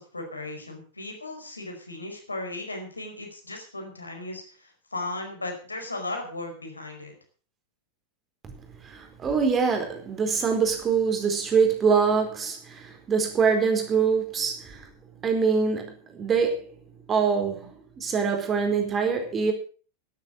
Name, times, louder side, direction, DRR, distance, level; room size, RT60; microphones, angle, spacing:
voice 1, 0.0-7.1, left 2 dB, 80° left, 3 dB, 5.0 m, -36 dB
voice 2, 8.8-14.8 15.2-16.7 17.1-19.5, right 5 dB, 25° right, 4 dB, 4.5 m, -24 dB
13.0 x 12.0 x 6.5 m, 0.40 s
figure-of-eight pair, 90°, 0 cm